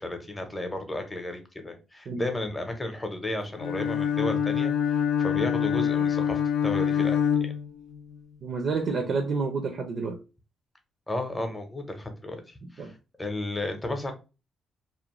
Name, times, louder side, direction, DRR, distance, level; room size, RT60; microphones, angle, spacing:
voice 1, 0.0-7.2 11.1-12.9 13.2-14.1, left 1 dB, 15° left, 0.7 m, -33 dB
Bowed string instrument, 3.6-8.2, left 8 dB, 85° left, 0.3 m, -25 dB
voice 2, 8.4-10.2 12.8-12.9, right 4 dB, 55° right, 0.5 m, -29 dB
2.5 x 2.1 x 3.0 m
cardioid pair, 105°, 0 cm